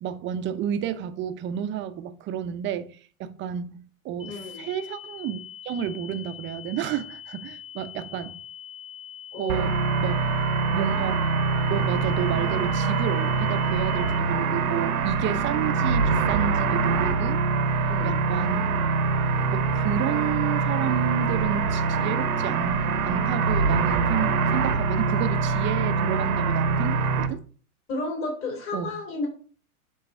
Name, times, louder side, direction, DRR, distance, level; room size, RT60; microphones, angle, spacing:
voice 1, 0.0-2.9 3.2-5.4 5.6-8.4 9.3-10.2 10.7-11.3 11.7-17.4 18.0-18.8 19.5-27.4 28.7-28.9, right 9 dB, 25° right, 0.7 m, -31 dB
sound 1, 4.2-14.2, left 9 dB, 10° left, 1.0 m, -43 dB
voice 2, 4.3-4.6 9.3-9.7 17.9-18.2 27.9-29.3, left 2 dB, 30° left, 3.0 m, -32 dB
sound 2, 9.5-27.3, right 4 dB, 80° right, 1.1 m, -24 dB
8.8 x 3.9 x 5.3 m
hypercardioid pair, 105°, 43 cm